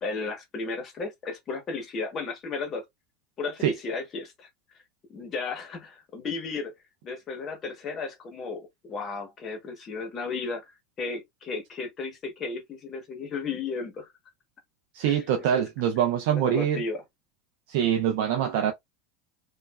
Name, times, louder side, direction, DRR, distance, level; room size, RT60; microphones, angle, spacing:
voice 1, 0.0-2.8 3.4-4.5 5.1-6.7 7.0-10.6 11.0-14.1 15.0-15.2 15.5-15.6 16.3-17.0, left 4 dB, 25° left, 1.0 m, -34 dB
voice 2, 14.9-16.8 17.7-18.7, right 9 dB, 60° right, 0.4 m, -24 dB
3.1 x 2.3 x 2.3 m
supercardioid pair, 165°, 0 cm